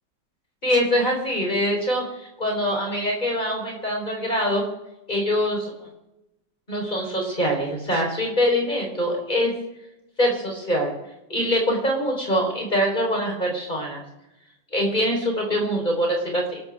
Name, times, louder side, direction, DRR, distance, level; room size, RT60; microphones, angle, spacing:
voice 1, 0.6-4.6 5.1-5.7 6.7-9.5 10.2-10.9 11.3-14.0 14.7-16.6, equal, 20° left, 0 dB, 4.6 m, -24 dB
27.5 x 13.0 x 3.7 m, 0.93 s
omnidirectional pair, 2.1 m